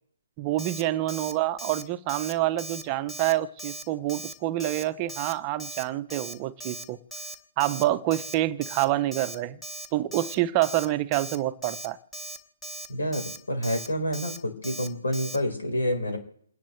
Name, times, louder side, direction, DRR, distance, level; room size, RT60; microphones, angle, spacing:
voice 1, 0.4-7.0 7.6-9.6 9.9-12.0, right 15 dB, 30° right, 11 dB, 0.6 m, -27 dB
Alarm, 0.6-0.8 1.1-1.3 1.6-1.8 2.1-2.3 2.6-2.8 3.1-3.3 3.6-3.8 4.1-4.3 4.6-4.8 5.1-5.3 5.6-5.8 6.1-6.3 6.6-6.8 7.1-7.3 7.6-7.8 8.1-8.3 8.6-8.9 9.1-9.4 9.6-9.9 10.1-10.4 10.6-10.9 11.1-11.4 11.6-11.9 12.1-12.4 12.6-12.9 13.1-13.4 13.6-13.9 14.1-14.4 14.6-14.9 15.1-15.4, right 2 dB, 5° left, 1.2 m, -38 dB
voice 2, 12.9-16.2, equal, 85° left, 4 dB, 4.3 m, -28 dB
29.0 x 10.5 x 3.2 m, 0.68 s
hypercardioid pair, 145°, 0 cm